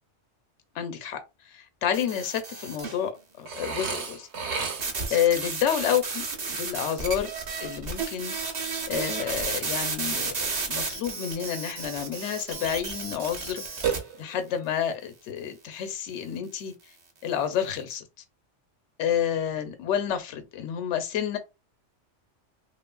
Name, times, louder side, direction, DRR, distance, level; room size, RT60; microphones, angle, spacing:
voice 1, 0.7-1.2 1.5-3.1 3.4-4.3 5.1-7.3 7.6-8.3 8.9-13.9 14.2-16.7 17.2-18.0 19.0-21.4, left 9 dB, 75° left, 0.9 m, -29 dB
sound 1, 1.9-3.0 4.8-14.0, right 4 dB, 45° right, 0.6 m, -32 dB
Burping eructation, 3.5-5.2 13.8-14.6, right 6 dB, 70° right, 0.9 m, -32 dB
3.0 x 2.5 x 2.2 m
omnidirectional pair, 1.2 m